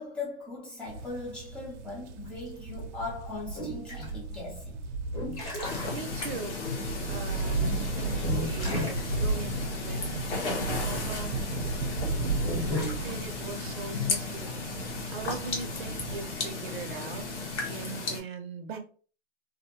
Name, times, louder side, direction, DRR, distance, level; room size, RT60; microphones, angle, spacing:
voice 1, 0.0-4.8, left 3 dB, 5° left, 0.4 m, -39 dB
sound 1, 0.9-18.1, right 4 dB, 85° right, 0.6 m, -35 dB
sound 2, 2.2-11.7 12.3-13.4, left 1 dB, 30° left, 1.0 m, -36 dB
sound 3, 5.6-18.2, left 4 dB, 80° left, 1.1 m, -34 dB
voice 2, 5.9-6.6 7.1-10.2 10.8-11.4 13.0-17.3 17.7-18.8, right 5 dB, 45° right, 0.5 m, -41 dB
2.6 x 2.0 x 2.8 m
hypercardioid pair, 150°, 35 cm